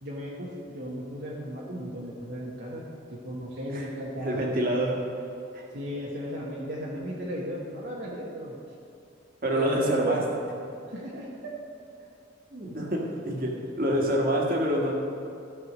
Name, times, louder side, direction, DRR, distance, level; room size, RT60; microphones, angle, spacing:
voice 1, 0.0-2.8 3.1-4.4 5.7-8.6 9.5-10.2 10.9-11.5, equal, 65° right, -5 dB, 1.3 m, -35 dB
voice 2, 4.2-4.9 5.5-5.7 9.4-10.2 12.5-13.5 13.8-14.9, right 1 dB, 50° right, -1 dB, 1.7 m, -26 dB
14.0 x 4.9 x 6.2 m, 2.7 s
head